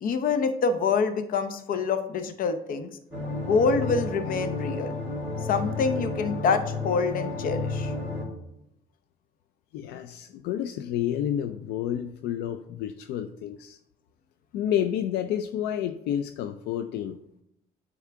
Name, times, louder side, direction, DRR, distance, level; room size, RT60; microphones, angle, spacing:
voice 1, 0.0-2.9 3.4-4.9 5.5-7.9, left 5 dB, 55° left, 9 dB, 0.7 m, -26 dB
sound 1, 3.1-8.2, left 3 dB, 5° right, 2.7 m, -32 dB
voice 2, 9.7-13.8 14.5-17.2, left 10 dB, 85° left, 9 dB, 0.4 m, -30 dB
9.3 x 3.6 x 3.6 m, 0.80 s
cardioid pair, 110°, 17 cm